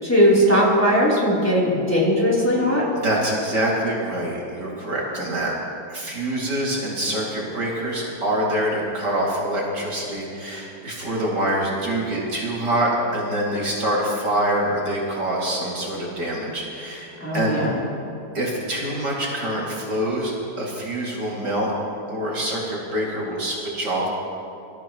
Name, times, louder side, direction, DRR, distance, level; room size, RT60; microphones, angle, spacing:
voice 1, 0.0-2.8 17.2-17.8, equal, 5° left, -7 dB, 3.4 m, -19 dB
voice 2, 3.0-5.5 5.9-17.6 18.3-21.7 22.1-24.1, right 1 dB, 60° right, -5 dB, 3.2 m, -25 dB
25.5 x 14.0 x 3.1 m, 2.6 s
omnidirectional pair, 2.1 m